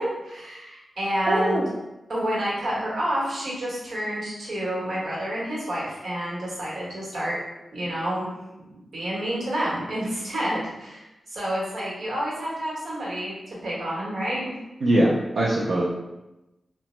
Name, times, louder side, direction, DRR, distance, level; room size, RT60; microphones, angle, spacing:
voice 1, 0.0-1.6 2.1-7.4 7.7-8.3 8.7-14.5, equal, 80° right, -6 dB, 1.1 m, -29 dB
voice 2, 1.3-1.7 14.8-15.8, right 1 dB, 60° right, -6 dB, 0.4 m, -21 dB
2.9 x 2.2 x 3.0 m, 0.98 s
wide cardioid pair, 165°, 0 cm